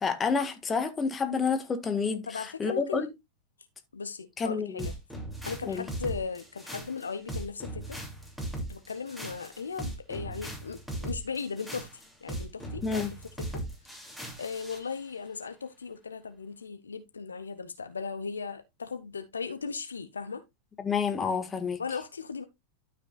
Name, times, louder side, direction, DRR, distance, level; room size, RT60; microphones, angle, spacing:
voice 1, 0.0-2.2 2.6-3.1 4.4-4.9 5.7-5.8 12.8-13.1 20.8-21.8, left 5 dB, 20° left, 1.7 m, -29 dB
voice 2, 2.2-3.1 3.9-4.9 5.4-8.0 8.7-13.0 13.4-13.6 14.4-20.4 21.8-22.4, left 5 dB, 75° left, 0.8 m, -37 dB
sound 1, 4.8-14.9, right 1 dB, 5° right, 2.8 m, -38 dB
12.5 x 5.8 x 2.4 m
figure-of-eight pair, 90°, 0 cm